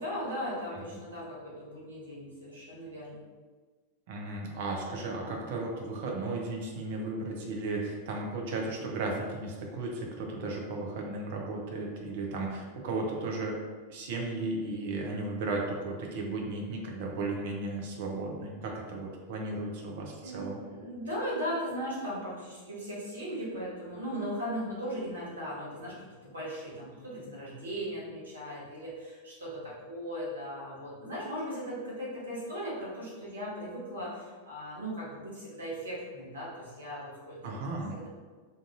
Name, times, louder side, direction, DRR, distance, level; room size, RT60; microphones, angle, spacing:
voice 1, 0.0-3.2 20.2-37.6 37.9-38.1, equal, 75° right, -6 dB, 1.2 m, -38 dB
voice 2, 4.1-13.6 13.9-20.6 37.4-38.0, right 2 dB, 55° right, 0 dB, 0.6 m, -35 dB
3.8 x 2.6 x 2.7 m, 1.4 s
figure-of-eight pair, 90°, 0 cm